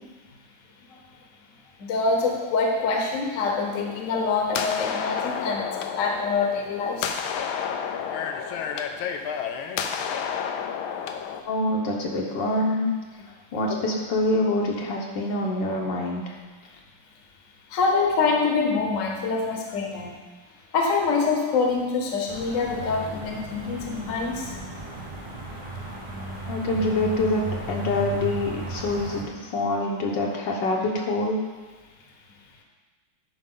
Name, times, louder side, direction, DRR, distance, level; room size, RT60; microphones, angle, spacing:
voice 1, 1.8-7.1 17.7-20.1 20.7-24.5, left 4 dB, 50° left, 1 dB, 1.2 m, -25 dB
sound 1, 3.6-11.4, left 7 dB, 90° left, 1.4 m, -31 dB
voice 2, 11.4-12.9 13.5-16.2 26.5-27.4 27.7-31.4, left 1 dB, 70° left, -1 dB, 1.5 m, -25 dB
sound 2, 22.3-29.2, right 1 dB, 30° right, 0.5 m, -35 dB
10.5 x 4.8 x 3.8 m, 1.4 s
omnidirectional pair, 2.2 m